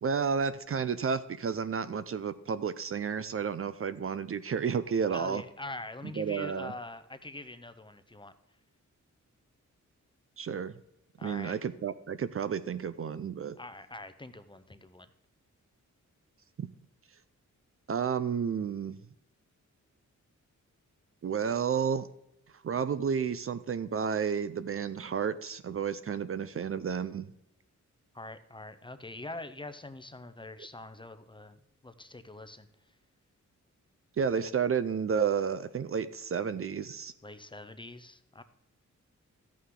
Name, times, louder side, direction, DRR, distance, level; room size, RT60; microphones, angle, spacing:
voice 1, 0.0-5.4 6.2-6.7 10.4-10.7 11.2-13.6 16.6-16.7 17.9-19.0 21.2-22.1 22.6-27.3 34.2-37.1, right 6 dB, 45° right, 13 dB, 0.5 m, -31 dB
voice 2, 5.1-8.3 11.2-11.6 13.6-15.1 28.1-32.7 37.2-38.4, left 2 dB, 15° left, 11 dB, 0.7 m, -44 dB
13.0 x 8.5 x 3.8 m, 0.82 s
wide cardioid pair, 105°, 30 cm